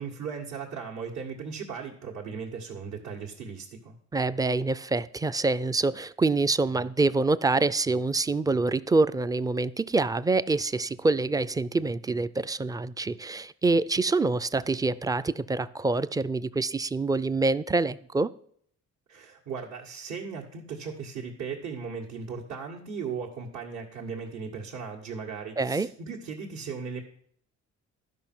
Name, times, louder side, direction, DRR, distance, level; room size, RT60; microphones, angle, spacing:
voice 1, 0.0-3.9 19.1-27.0, right 5 dB, 70° right, -4 dB, 1.8 m, -37 dB
voice 2, 4.1-18.3 25.6-25.9, right 3 dB, 15° right, 15 dB, 0.3 m, -26 dB
12.0 x 5.4 x 6.0 m, 0.63 s
cardioid pair, 90°, 30 cm